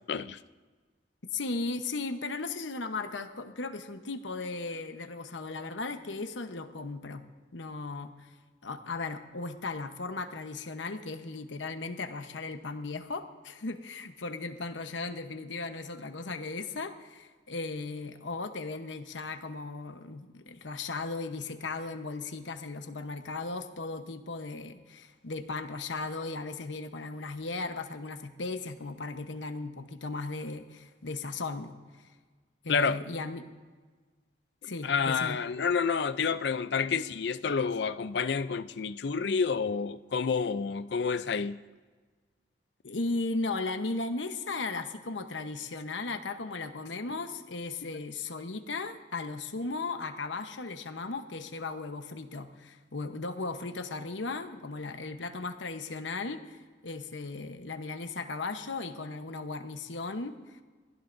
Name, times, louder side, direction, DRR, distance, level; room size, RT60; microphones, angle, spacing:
voice 1, 0.1-0.4 32.7-33.0 34.6-41.6, left 5 dB, 70° left, 13 dB, 0.5 m, -29 dB
voice 2, 1.3-7.2 7.5-8.3 8.6-31.7 32.6-33.5 34.6-35.4 42.8-56.6 56.8-60.6, left 3 dB, 85° left, 7 dB, 1.0 m, -36 dB
22.0 x 15.5 x 2.6 m, 1.4 s
head